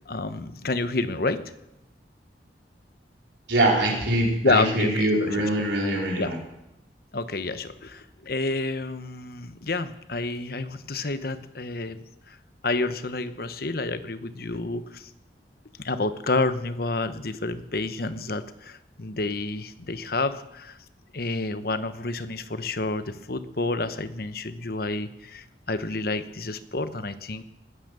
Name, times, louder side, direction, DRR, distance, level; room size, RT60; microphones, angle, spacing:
voice 1, 0.1-1.4 4.4-5.5 6.2-6.3 7.1-12.4 12.6-15.1 15.8-20.8 21.1-27.4, left 3 dB, 55° left, 12 dB, 1.0 m, -29 dB
voice 2, 3.5-6.4, right 1 dB, 85° right, -1 dB, 4.7 m, -23 dB
20.5 x 10.0 x 6.8 m, 0.89 s
head